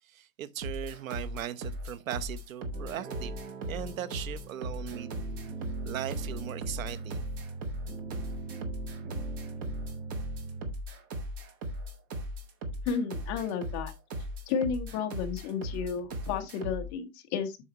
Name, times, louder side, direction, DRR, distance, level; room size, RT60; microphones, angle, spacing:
voice 1, 0.0-5.1 5.8-7.3, right 11 dB, 70° right, 1.0 m, -39 dB
sound 1, 0.6-16.9, equal, 15° right, 0.5 m, -38 dB
sound 2, 2.7-10.7, right 4 dB, 40° right, 3.2 m, -41 dB
voice 2, 12.8-13.9 14.5-17.6, left 6 dB, 25° left, 1.1 m, -32 dB
8.5 x 6.3 x 2.9 m
supercardioid pair, 170°, 42 cm